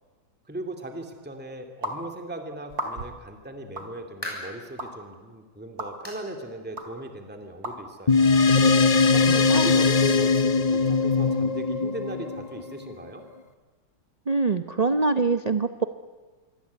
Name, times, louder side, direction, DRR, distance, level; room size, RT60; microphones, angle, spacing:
voice 1, 0.5-8.4 9.1-13.2, right 1 dB, 5° right, 4 dB, 2.3 m, -38 dB
sound 1, 1.8-2.0 2.7-3.2 3.8-3.9 4.8-4.9 5.8-5.9 6.8-6.9 7.6-7.8, equal, 50° right, 3.4 m, -33 dB
sound 2, 3.9-4.6 5.1-5.3 6.0-6.3 6.6-6.7 7.2-7.3 8.4-8.5, left 1 dB, 10° left, 7.6 m, -38 dB
sound 3, 8.1-12.9, left 4 dB, 55° left, 0.4 m, -20 dB
voice 2, 9.3-9.7 14.3-15.8, right 3 dB, 80° right, 9 dB, 0.3 m, -24 dB
26.5 x 24.0 x 8.3 m, 1.3 s
omnidirectional pair, 2.1 m